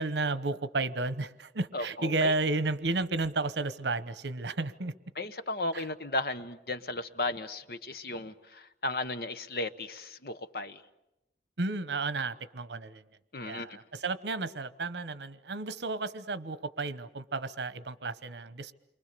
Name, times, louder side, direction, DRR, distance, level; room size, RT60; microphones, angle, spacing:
voice 1, 0.0-4.9 5.7-5.8 11.6-13.0 13.4-18.7, right 3 dB, 80° right, 1.0 m, -32 dB
voice 2, 1.7-2.3 5.2-10.8 13.3-13.8, left 2 dB, 55° left, 1.0 m, -35 dB
29.0 x 24.0 x 6.8 m
head